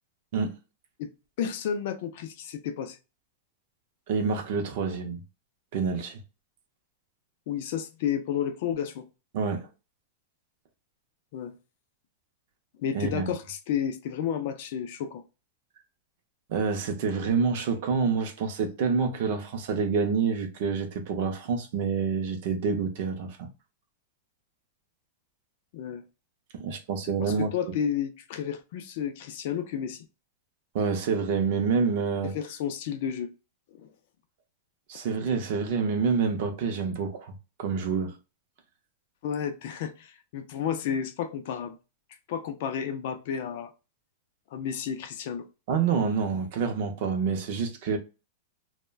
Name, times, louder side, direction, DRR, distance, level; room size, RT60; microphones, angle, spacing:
voice 1, 1.4-3.0 7.5-9.0 11.3-11.6 12.8-15.2 25.7-26.0 27.2-30.1 32.3-33.3 33.7-33.9 34.9-35.0 39.2-41.8 42.3-43.7 44.5-45.5, left 8 dB, 45° left, 0.3 m, -31 dB
voice 2, 4.1-5.2 5.7-6.2 9.3-9.7 12.9-13.3 16.5-23.5 26.5-27.7 30.7-32.3 34.9-37.3 37.6-38.1 45.7-48.0, right 5 dB, 45° right, 0.5 m, -27 dB
2.3 x 2.1 x 3.2 m
supercardioid pair, 175°, 0 cm